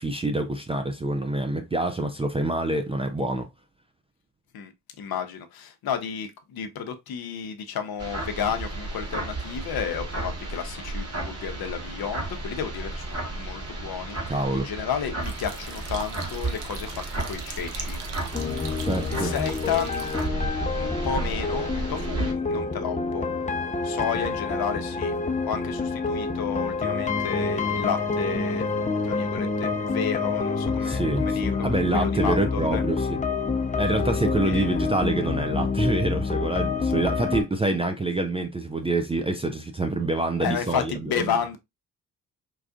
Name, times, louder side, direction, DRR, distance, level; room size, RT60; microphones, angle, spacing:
voice 1, 0.0-3.5 14.3-14.7 18.8-19.3 22.5-22.6 30.8-33.2 33.8-41.2, right 2 dB, 15° right, 0.4 m, -26 dB
voice 2, 5.0-18.0 19.1-20.0 20.8-23.3 23.8-25.1 25.4-28.7 29.0-32.8 34.4-34.9 40.4-41.6, left 7 dB, 50° left, 0.8 m, -32 dB
sound 1, 8.0-22.3, right 2 dB, 30° right, 1.4 m, -33 dB
sound 2, 15.2-20.3, right 6 dB, 60° right, 0.8 m, -41 dB
sound 3, 18.3-37.4, left 4 dB, 15° left, 0.7 m, -27 dB
4.6 x 2.4 x 2.4 m
hypercardioid pair, 45°, 46 cm